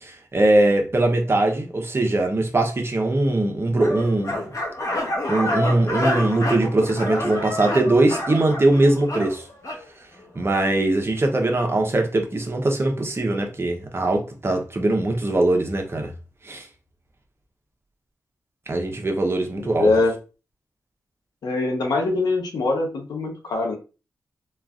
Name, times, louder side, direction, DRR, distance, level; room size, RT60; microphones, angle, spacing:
voice 1, 0.0-4.4 5.3-9.4 10.3-16.1 16.4-16.6 18.7-19.9, right 2 dB, 40° right, 0.8 m, -21 dB
sound 1, 3.8-9.8, left 1 dB, 55° left, 0.9 m, -28 dB
voice 2, 19.6-20.1 21.4-23.7, left 3 dB, 85° left, 0.9 m, -23 dB
3.0 x 2.4 x 2.4 m
cardioid pair, 55°, 7 cm